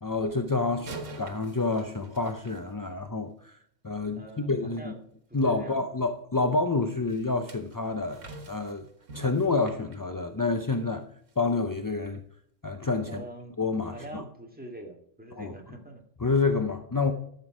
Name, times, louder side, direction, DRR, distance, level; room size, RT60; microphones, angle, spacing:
voice 1, 0.0-3.6 3.8-4.9 5.3-8.8 9.1-11.0 11.4-12.2 12.6-13.2 13.6-14.2 15.3-15.6 16.2-17.1, left 3 dB, 30° left, 0.3 m, -28 dB
sound 1, 0.7-3.3 7.1-10.9 11.3-11.5 12.1-12.2, right 3 dB, 85° right, 1.9 m, -46 dB
voice 2, 4.2-4.5 4.8-5.0 5.3-5.9 13.0-13.6 13.9-16.0, right 2 dB, 5° right, 2.0 m, -44 dB
12.5 x 6.7 x 4.9 m
omnidirectional pair, 1.3 m